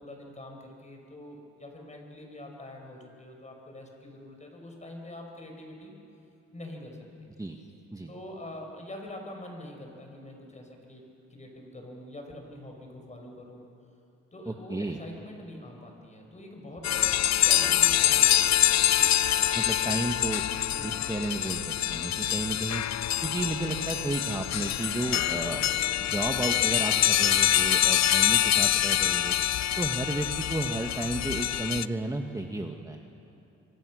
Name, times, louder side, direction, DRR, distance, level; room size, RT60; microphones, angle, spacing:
voice 1, 0.0-5.9 6.5-7.3 8.1-11.0 11.3-13.7 14.3-19.2 19.8-20.0 20.7-21.0, left 1 dB, 25° left, 2 dB, 5.6 m, -44 dB
voice 2, 14.5-15.0 19.5-20.4 20.8-22.8 23.2-25.6 26.0-29.3 29.8-33.0, right 2 dB, 10° right, 3 dB, 1.5 m, -32 dB
sound 1, 16.8-31.9, left 12 dB, 60° left, 0.6 m, -25 dB
26.5 x 23.0 x 6.4 m, 2.7 s
cardioid pair, 90°, 30 cm